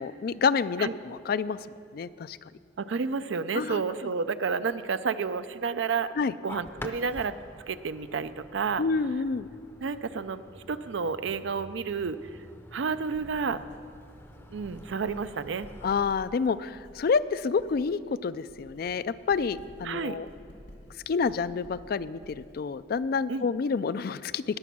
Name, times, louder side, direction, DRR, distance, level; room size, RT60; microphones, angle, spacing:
voice 1, 0.0-1.6 1.9-2.4 3.5-3.8 6.2-6.3 8.8-9.5 15.8-20.3 21.1-24.6, left 5 dB, 50° left, 16 dB, 0.3 m, -28 dB
voice 2, 2.8-6.1 6.4-7.4 7.7-8.8 9.8-10.4 10.7-12.3 12.7-13.6 14.5-15.7 19.8-20.2 23.3-23.5, right 5 dB, 75° right, 13 dB, 0.5 m, -30 dB
sound 1, 6.5-15.9, left 1 dB, 10° left, 0.6 m, -48 dB
Writing, 13.1-18.0 18.3-23.0, equal, 85° left, 2.7 m, -51 dB
19.5 x 7.1 x 6.1 m, 2.4 s
head